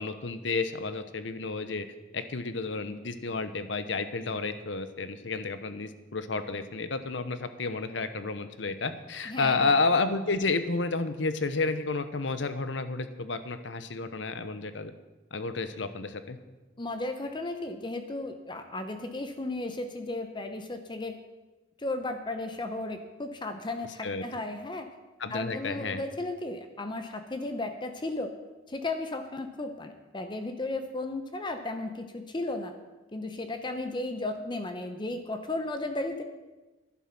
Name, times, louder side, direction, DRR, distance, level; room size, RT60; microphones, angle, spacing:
voice 1, 0.0-1.9 2.1-14.9 15.3-16.4 24.0-24.2 25.2-26.0, left 3 dB, 65° left, 11 dB, 0.9 m, -31 dB
voice 2, 9.3-9.7 16.8-21.2 21.8-24.9 25.3-28.3 28.7-32.7 33.1-36.2, left 2 dB, 25° left, 7 dB, 0.8 m, -35 dB
11.5 x 11.0 x 6.0 m, 1.1 s
head